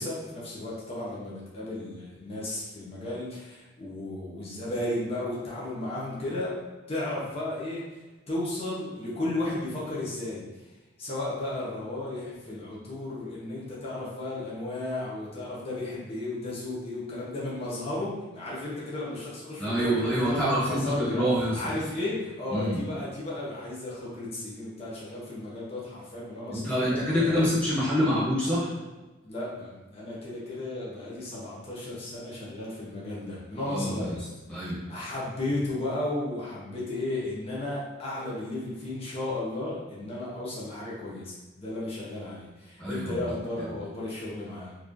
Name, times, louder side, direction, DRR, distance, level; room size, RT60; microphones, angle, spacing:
voice 1, 0.0-6.6 6.9-7.8 8.3-10.5 11.0-27.7 29.2-34.2 34.9-44.8, left 2 dB, 30° left, -7 dB, 0.8 m, -34 dB
voice 2, 19.6-21.6 22.5-22.8 26.5-28.7 33.7-34.1 34.5-34.8 42.8-43.3, equal, 5° left, -10 dB, 1.3 m, -26 dB
3.1 x 2.5 x 3.6 m, 1.2 s
head